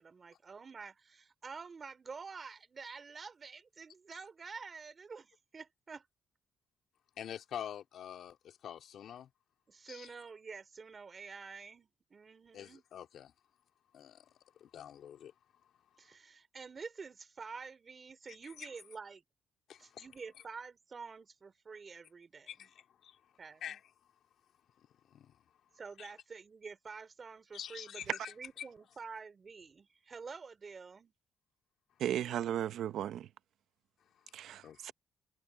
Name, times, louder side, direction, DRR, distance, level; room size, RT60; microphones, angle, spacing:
voice 1, 0.0-6.1 9.7-12.8 16.0-19.2 19.8-22.7 23.4-23.8 25.7-31.1, right 5 dB, 40° right, 3.9 m, -48 dB
voice 2, 7.2-9.3 9.9-10.1 12.5-13.3 13.9-14.3 14.6-15.3 18.6-18.7 19.7-20.0 22.5-23.2 23.6-23.8 25.1-25.4 26.0-26.1 27.5-28.7 34.6-34.9, left 9 dB, 70° left, 2.7 m, -46 dB
voice 3, 32.0-33.3 34.3-34.9, right 11 dB, 75° right, 0.7 m, -35 dB
cardioid pair, 90°, 0 cm